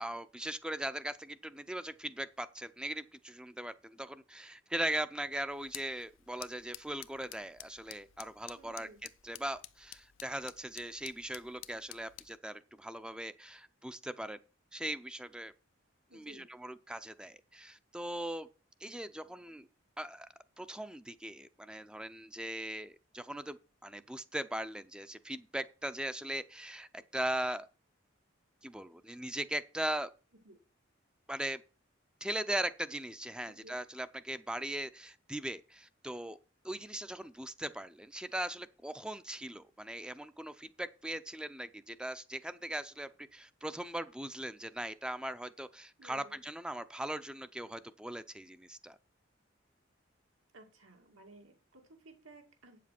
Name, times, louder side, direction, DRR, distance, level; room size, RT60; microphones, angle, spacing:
voice 1, 0.0-8.9 9.2-14.4 14.7-15.5 16.1-18.5 18.8-19.7 20.0-20.3 20.6-23.6 23.8-27.7 28.6-30.1 31.3-31.6 32.2-36.4 36.6-49.0, right 1 dB, 5° right, 0.4 m, -39 dB
sound 1, 5.5-12.4, left 14 dB, 90° left, 0.6 m, -51 dB
voice 2, 8.6-9.0 16.1-16.5 30.4-30.6 33.5-33.8 46.0-46.4 50.5-52.8, right 2 dB, 90° right, 2.5 m, -56 dB
8.7 x 7.5 x 5.8 m
head